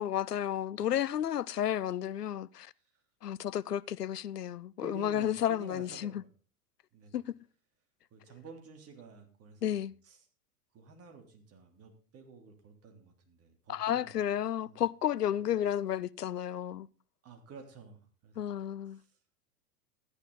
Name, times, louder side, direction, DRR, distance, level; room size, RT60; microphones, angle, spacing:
voice 1, 0.0-2.7 3.2-6.1 7.1-7.3 9.6-9.9 13.7-16.9 18.4-19.0, left 10 dB, 80° left, 0.6 m, -32 dB
voice 2, 0.7-1.0 2.8-3.0 4.8-6.3 6.9-7.2 8.1-10.2 10.7-14.3 14.6-14.8 15.4-15.6 17.2-18.5 18.9-19.2, right 4 dB, 30° right, 3.2 m, -52 dB
13.5 x 9.7 x 4.0 m
figure-of-eight pair, 90°, 46 cm